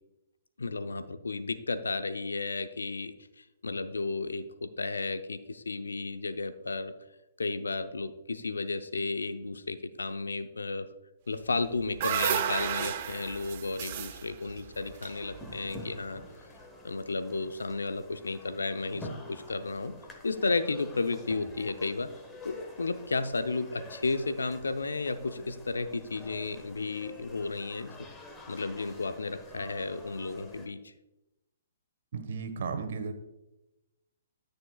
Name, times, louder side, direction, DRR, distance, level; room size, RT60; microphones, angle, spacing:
voice 1, 0.6-6.9 7.4-10.9 11.3-16.2 16.8-19.9 20.2-22.1 22.4-27.9 28.5-30.9, left 3 dB, 85° left, 10 dB, 0.7 m, -33 dB
sound 1, 11.5-15.8, right 9 dB, 45° right, 0.8 m, -33 dB
sound 2, 14.7-30.7, left 2 dB, 15° left, 1.3 m, -48 dB
voice 2, 32.1-33.1, right 5 dB, 60° right, 8 dB, 1.3 m, -34 dB
14.0 x 6.6 x 2.4 m, 0.95 s
hypercardioid pair, 130°, 0 cm